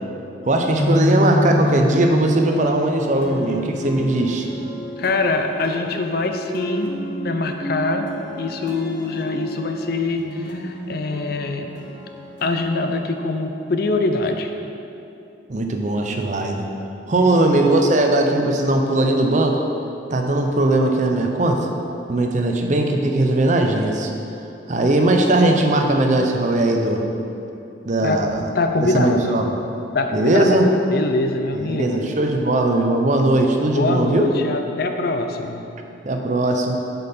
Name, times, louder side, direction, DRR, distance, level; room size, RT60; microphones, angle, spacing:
voice 1, 0.4-4.5 15.5-16.7 17.1-19.6 20.1-21.7 22.1-24.1 24.7-27.0 27.8-28.4 28.8-29.6 30.1-30.7 31.7-34.3 36.0-36.8, right 2 dB, 40° right, 3 dB, 0.6 m, -19 dB
sound 1, 0.8-4.3, left 1 dB, 10° left, 0.8 m, -24 dB
sound 2, 3.2-14.4, equal, 70° left, 0.9 m, -33 dB
voice 2, 5.0-6.9 7.2-8.1 8.4-11.7 12.4-14.5 17.1-17.5 28.0-28.2 28.5-29.4 29.9-30.6 30.9-32.0 33.6-35.6, left 2 dB, 55° left, 6 dB, 0.5 m, -23 dB
7.8 x 5.4 x 4.2 m, 2.7 s
head